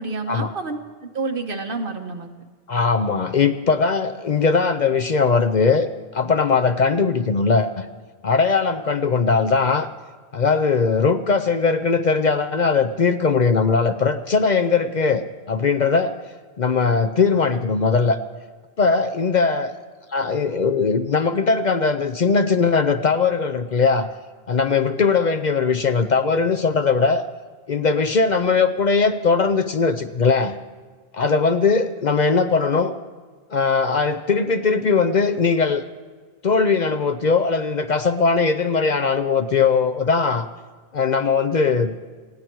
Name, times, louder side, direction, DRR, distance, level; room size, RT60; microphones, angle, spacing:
voice 1, 0.0-2.3, right 3 dB, 60° right, 5 dB, 1.4 m, -29 dB
voice 2, 2.7-5.9 6.1-7.9 8.2-9.9 10.3-16.1 16.6-18.2 18.8-19.7 20.1-24.1 24.5-27.2 27.7-30.6 31.1-32.9 33.5-35.8 36.4-40.5 40.9-41.9, left 4 dB, 50° left, 9 dB, 0.7 m, -20 dB
19.5 x 15.5 x 4.6 m, 1.5 s
omnidirectional pair, 1.0 m